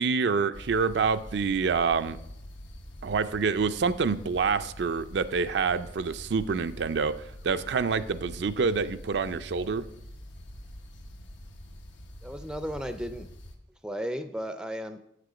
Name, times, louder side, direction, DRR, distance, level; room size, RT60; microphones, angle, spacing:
voice 1, 0.0-2.2 3.0-7.1 7.4-9.8, right 5 dB, 70° right, 10 dB, 0.4 m, -27 dB
sound 1, 0.5-13.6, left 1 dB, 85° left, 1.1 m, -45 dB
voice 2, 12.2-13.3 13.8-15.0, equal, 5° right, 9 dB, 0.4 m, -34 dB
7.6 x 6.6 x 5.0 m, 0.78 s
head